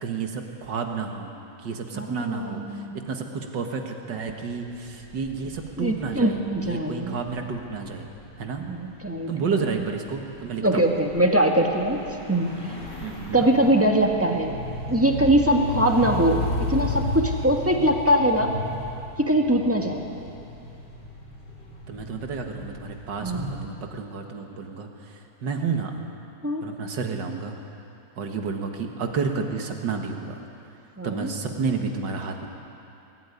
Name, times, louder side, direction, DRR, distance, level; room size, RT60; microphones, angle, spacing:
voice 1, 0.0-1.3 1.6-6.4 6.6-8.1 8.4-8.6 9.3-10.8 13.0-13.5 21.9-25.9 26.6-27.6 28.2-30.4 31.0-32.5, right 5 dB, 80° right, 3 dB, 2.2 m, -31 dB
voice 2, 1.9-3.0 5.8-7.2 8.7-9.8 10.6-12.0 12.3-12.5 13.3-14.6 14.9-16.4 16.7-18.5 19.3-20.1 23.2-23.5 26.4-26.6 31.0-31.3, right 1 dB, 10° right, 1 dB, 1.5 m, -22 dB
sound 1, 4.2-23.6, left 2 dB, 80° left, 3.7 m, -35 dB
21.5 x 13.0 x 9.7 m, 2.7 s
omnidirectional pair, 1.9 m